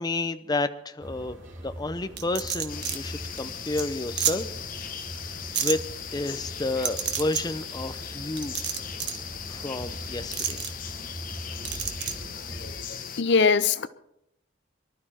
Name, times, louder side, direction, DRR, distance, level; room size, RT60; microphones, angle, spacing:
voice 1, 0.0-1.4 1.6-4.5 5.2-5.3 5.6-5.8 6.1-8.6 9.5-10.6, left 2 dB, 20° left, 0.7 m, -30 dB
sound 1, 1.0-12.8, equal, 90° right, 3.8 m, -42 dB
sound 2, 2.2-3.0 3.4-3.5 3.8-3.9 4.2-4.3 5.5-5.7 6.8-7.4 8.4-9.2 10.3-10.7 11.6-12.1, right 9 dB, 65° right, 1.5 m, -28 dB
sound 3, 2.7-13.2, left 8 dB, 50° left, 1.3 m, -38 dB
voice 2, 12.6-13.9, left 5 dB, 65° left, 0.6 m, -23 dB
24.0 x 12.5 x 4.4 m
head